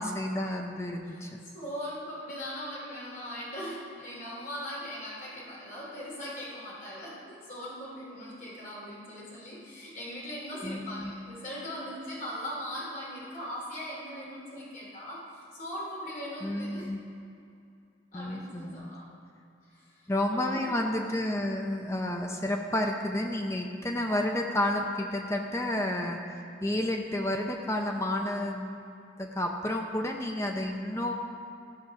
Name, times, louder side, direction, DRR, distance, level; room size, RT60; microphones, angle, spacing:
voice 1, 0.0-1.4 10.6-11.1 16.4-17.0 18.1-18.9 20.1-28.8 29.2-31.1, left 1 dB, 15° left, 2 dB, 0.6 m, -31 dB
voice 2, 1.5-16.9 18.1-19.0 19.7-20.8, equal, 45° left, -6 dB, 3.2 m, -40 dB
15.0 x 6.3 x 6.1 m, 2.5 s
head